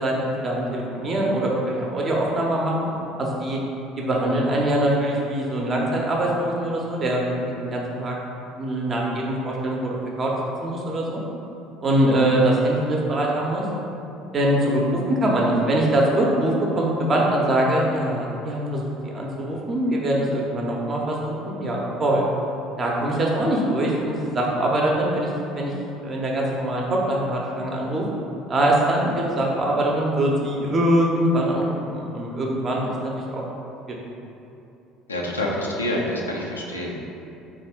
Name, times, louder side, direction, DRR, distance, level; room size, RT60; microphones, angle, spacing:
voice 1, 0.0-3.6 4.0-8.2 8.6-10.3 10.6-11.2 11.8-13.6 14.3-22.2 22.8-25.3 25.5-25.7 26.0-28.0 28.5-33.4, right 1 dB, 35° right, -2 dB, 0.7 m, -23 dB
voice 2, 35.1-37.1, left 1 dB, 90° left, -2 dB, 0.4 m, -27 dB
3.7 x 2.4 x 3.5 m, 2.8 s
figure-of-eight pair, 60°, 0 cm